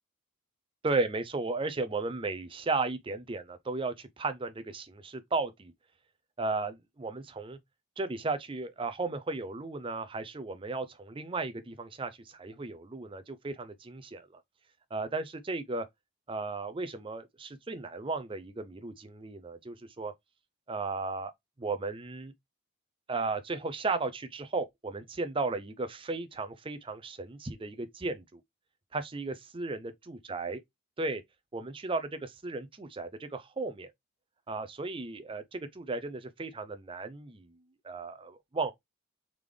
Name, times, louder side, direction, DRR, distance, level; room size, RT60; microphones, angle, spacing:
voice 1, 0.8-5.7 6.4-7.6 8.0-14.4 14.9-15.8 16.3-20.1 20.7-21.3 21.6-22.3 23.1-28.4 28.9-30.6 31.0-31.2 31.5-33.9 34.5-37.5 37.8-38.7, right 3 dB, 25° right, 0.5 m, -35 dB
3.7 x 3.4 x 3.1 m
head